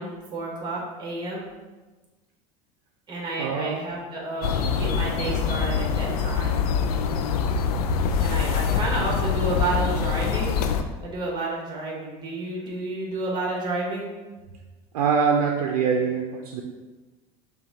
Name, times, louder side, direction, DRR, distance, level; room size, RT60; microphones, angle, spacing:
voice 1, 0.0-1.4 3.1-6.6 8.2-10.6 11.0-14.1, right 2 dB, 25° right, -3 dB, 1.4 m, -30 dB
voice 2, 3.4-3.8 14.9-16.6, right 6 dB, 90° right, 2 dB, 0.5 m, -23 dB
sound 1, 4.4-10.8, left 6 dB, 90° left, 0.4 m, -24 dB
5.6 x 2.3 x 3.9 m, 1.2 s
supercardioid pair, 105°, 19 cm